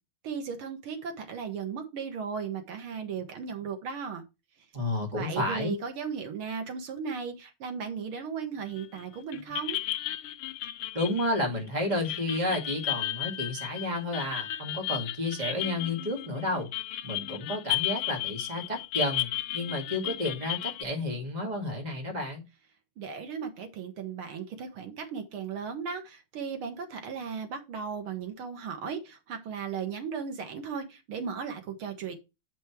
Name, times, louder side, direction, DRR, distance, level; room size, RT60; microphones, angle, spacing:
voice 1, 0.2-4.2 5.1-9.8 23.0-32.1, right 6 dB, 85° right, 2.4 m, -36 dB
voice 2, 4.7-5.8 10.9-16.7 17.0-19.3 19.5-22.4, left 1 dB, 20° right, 2.2 m, -31 dB
sound 1, 8.8-9.0 9.3-20.8, left 15 dB, 85° left, 1.5 m, -34 dB
9.2 x 5.4 x 4.6 m
omnidirectional pair, 2.3 m